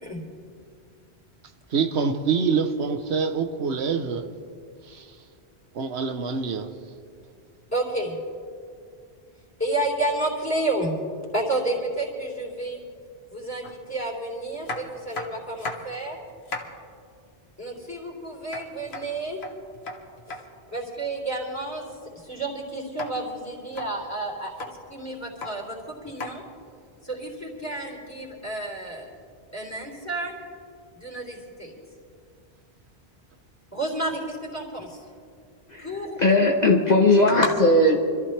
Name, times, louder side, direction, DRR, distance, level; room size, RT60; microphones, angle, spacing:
voice 1, 1.7-4.2 4.8-5.2 5.7-6.7, right 5 dB, 80° right, 8 dB, 1.1 m, -25 dB
voice 2, 7.7-8.2 9.6-10.9 11.3-12.8 13.3-16.2 17.6-19.4 20.3-20.4 20.7-21.9 22.1-24.5 24.9-26.4 27.0-29.1 29.5-30.3 30.9-31.7 33.7-35.0 35.8-36.4, right 2 dB, 15° left, -2 dB, 3.4 m, -30 dB
sound 1, 13.6-13.7 14.6-16.0 16.3-16.8 18.5-20.4 23.0-23.1 23.6-23.9 24.4-24.7 25.2-25.5 26.2-26.3 27.6-27.7, left 3 dB, 75° left, 1.6 m, -35 dB
voice 3, 35.7-38.0, left 2 dB, 40° left, 0 dB, 1.1 m, -19 dB
25.5 x 14.0 x 3.3 m, 2.3 s
omnidirectional pair, 1.1 m